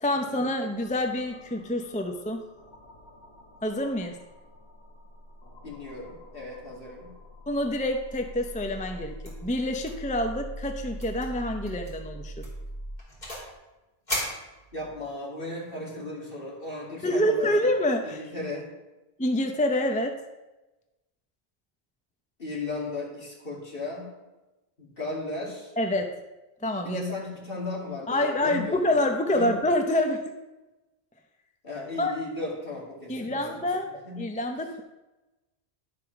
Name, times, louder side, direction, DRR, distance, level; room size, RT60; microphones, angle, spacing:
voice 1, 0.0-2.5 3.6-4.2 7.5-12.3 17.0-18.2 19.2-20.2 25.8-26.1 26.6-27.0 28.1-30.3 32.0-32.1 33.1-34.8, left 1 dB, 10° left, 4 dB, 0.6 m, -27 dB
sound 1, 0.7-13.0, equal, 80° left, 1.5 m, -43 dB
voice 2, 5.6-7.1 14.7-17.5 18.0-18.7 22.4-24.1 24.8-25.7 26.8-29.0 29.3-29.5 31.6-33.4 34.0-34.2, left 2 dB, 60° left, -3 dB, 2.7 m, -35 dB
sound 2, 9.2-9.5 9.8-10.1 10.4-10.5 11.0-11.3 11.7-11.9 12.4-13.5 14.1-15.1, equal, 45° left, 3.6 m, -35 dB
11.5 x 5.1 x 5.9 m, 1.1 s
omnidirectional pair, 1.1 m